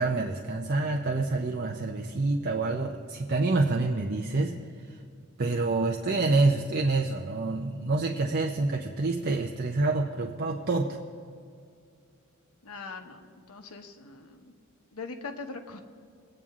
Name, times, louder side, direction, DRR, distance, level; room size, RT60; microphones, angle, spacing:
voice 1, 0.0-4.5 4.9-5.0 5.4-11.0, right 3 dB, 45° right, 2 dB, 0.6 m, -27 dB
voice 2, 12.6-14.5 14.9-15.8, left 4 dB, 85° left, 4 dB, 1.1 m, -41 dB
21.0 x 8.8 x 3.6 m, 2.3 s
head